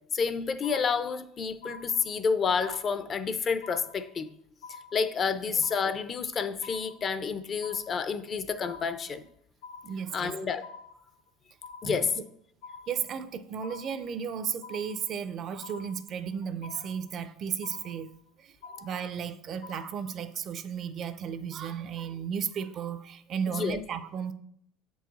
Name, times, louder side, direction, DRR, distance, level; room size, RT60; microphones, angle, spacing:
voice 1, 0.0-4.3 4.9-9.2 10.1-10.6 11.8-12.1 23.5-23.8, left 5 dB, 30° left, 0.4 m, -29 dB
sound 1, 0.6-1.3 1.6-2.3 2.6-3.3 3.6-4.3 4.6-5.3 5.6-6.3 6.6-7.3 7.6-8.3 8.6-9.3 9.6-10.3 10.6-11.3 11.6-12.3 12.6-13.3 13.6-14.3 14.6-15.3 15.6-16.3 16.6-17.3 17.6-18.3 18.6-19.3 19.6-20.3, left 5 dB, 85° left, 0.4 m, -47 dB
voice 2, 9.8-10.4 11.8-12.1 12.9-18.1 18.4-24.3, right 7 dB, 40° right, 0.4 m, -34 dB
6.9 x 4.7 x 4.0 m
cardioid pair, 130°, 0 cm